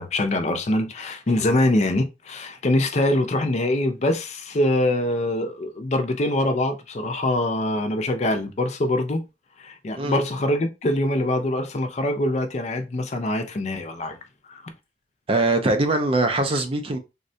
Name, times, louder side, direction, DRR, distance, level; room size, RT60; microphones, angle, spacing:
voice 1, 0.0-9.2 9.6-14.2 14.5-14.6, left 1 dB, 35° left, 0.5 m, -24 dB
voice 2, 15.3-17.0, right 2 dB, 30° right, 0.4 m, -22 dB
3.6 x 2.1 x 2.6 m
head